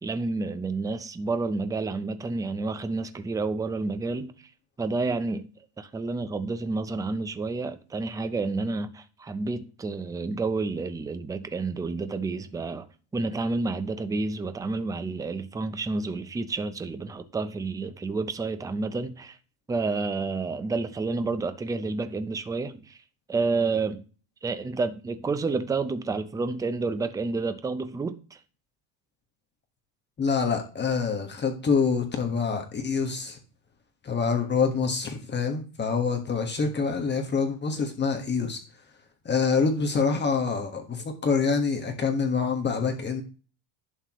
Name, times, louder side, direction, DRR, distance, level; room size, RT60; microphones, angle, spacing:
voice 1, 0.0-4.3 4.8-5.5 5.8-12.9 13.1-19.4 19.7-23.0 23.3-24.0 24.4-28.4, right 3 dB, 5° right, 0.5 m, -30 dB
voice 2, 30.2-33.4 34.0-38.6 39.2-43.2, left 5 dB, 20° left, 1.5 m, -26 dB
11.5 x 8.3 x 3.1 m
cardioid pair, 145°, 49 cm